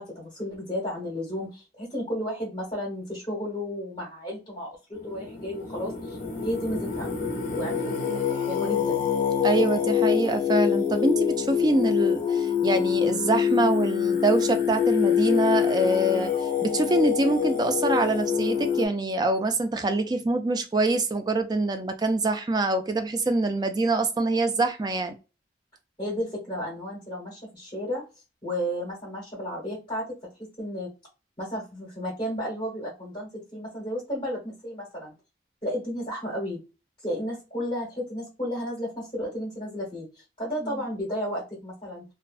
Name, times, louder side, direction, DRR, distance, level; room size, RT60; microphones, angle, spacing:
voice 1, 0.0-7.1 7.5-9.0 26.0-28.0 28.4-30.0 30.6-30.9 31.4-35.1 35.6-36.6 37.0-42.0, equal, 30° left, 1.1 m, -33 dB
Singing, 5.0-18.9, left 8 dB, 50° left, 0.6 m, -25 dB
voice 2, 9.4-16.3 16.6-25.1 40.6-40.8, right 2 dB, 25° right, 0.3 m, -25 dB
2.4 x 2.2 x 2.4 m
head